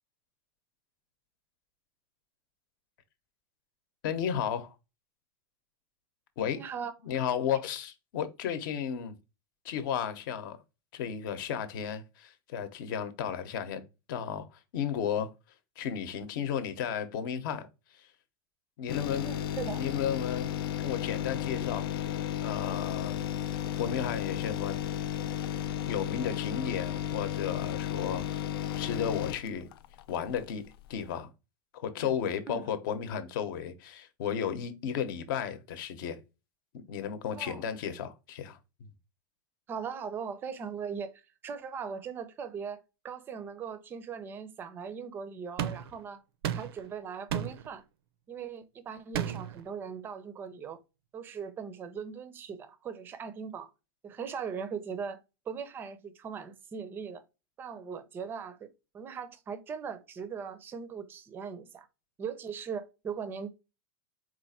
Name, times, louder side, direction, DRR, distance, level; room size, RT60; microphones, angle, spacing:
voice 1, 4.0-4.7 6.4-6.6 7.0-9.1 9.6-10.6 10.9-14.5 14.7-15.3 15.8-17.7 17.9-18.1 18.8-19.3 19.8-20.5 20.8-21.9 22.4-23.2 23.8-24.7 25.9-28.5 28.8-29.7 30.1-30.6 30.9-31.3 31.7-36.2 36.7-38.6, left 8 dB, 60° left, 0.9 m, -33 dB
voice 2, 6.6-6.9 7.5-7.6 19.2-19.9 32.5-32.6 37.4-37.6 39.7-46.2 46.5-47.8 48.3-50.8 51.1-53.7 54.0-55.2 55.5-57.2 57.6-61.9 62.2-63.5, right 6 dB, 15° right, 0.4 m, -39 dB
sound 1, 18.9-30.5 30.9-31.0, left 10 dB, 80° left, 0.5 m, -33 dB
sound 2, 45.6-46.0 46.4-46.9 47.3-47.7 49.1-49.6, right 9 dB, 85° right, 0.5 m, -33 dB
4.4 x 2.5 x 4.1 m
supercardioid pair, 160°, 12 cm